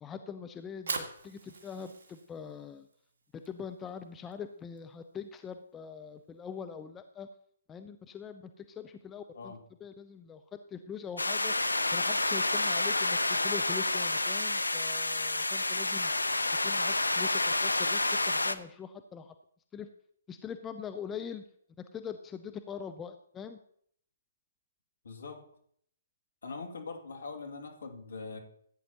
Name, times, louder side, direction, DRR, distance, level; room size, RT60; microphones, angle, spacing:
voice 1, 0.0-2.9 3.3-7.3 7.7-9.5 9.8-11.5 11.9-16.1 16.6-18.0 18.3-19.3 19.7-19.9 20.3-21.4 21.9-23.6, left 7 dB, 15° left, 8 dB, 0.5 m, -43 dB
Fire, 0.6-6.8, right 3 dB, 55° right, 2.0 m, -44 dB
sound 1, 11.2-18.6, left 2 dB, 80° left, 0.7 m, -29 dB
voice 2, 25.0-25.4 26.4-28.4, left 4 dB, 60° left, 3 dB, 2.5 m, -42 dB
15.0 x 9.2 x 3.0 m, 0.65 s
figure-of-eight pair, 130°, 0 cm